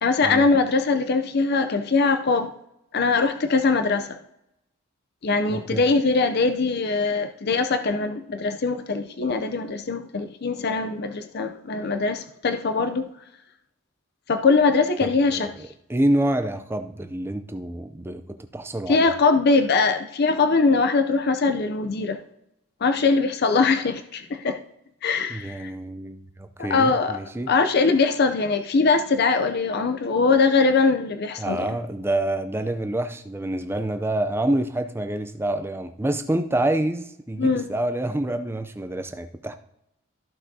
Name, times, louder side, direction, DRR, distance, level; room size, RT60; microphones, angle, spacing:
voice 1, 0.0-2.5 2.9-4.2 5.2-13.1 14.3-15.5 18.9-22.2 22.8-24.6 25.0-25.7 26.6-27.2 27.5-31.7 37.4-37.6, left 4 dB, 45° left, 0.5 m, -22 dB
voice 2, 5.5-5.9 15.0-19.1 25.3-27.6 31.4-39.5, right 1 dB, 10° right, 0.4 m, -27 dB
14.0 x 6.1 x 2.7 m
head